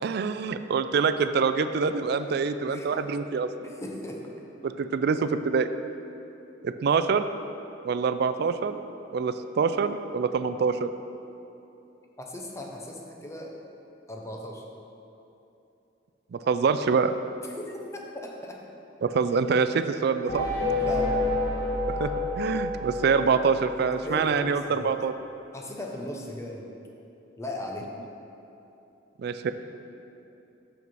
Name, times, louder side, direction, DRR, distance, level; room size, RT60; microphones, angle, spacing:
voice 1, 0.0-3.5 4.6-5.7 6.6-7.2 7.8-8.8 9.1-10.9 16.3-17.1 19.0-20.5 21.9-25.1 29.2-29.5, right 5 dB, 60° right, 10 dB, 0.3 m, -25 dB
voice 2, 2.6-3.0 3.6-4.3 12.2-13.6 14.1-14.6 17.4-17.8 18.2-18.6 20.8-21.4 23.9-24.5 24.8-24.9 25.5-26.7 27.4-27.9, left 1 dB, 15° left, 0 dB, 0.7 m, -37 dB
sound 1, 20.3-24.0, left 2 dB, 60° left, 1.3 m, -29 dB
5.9 x 5.9 x 5.3 m, 2.9 s
head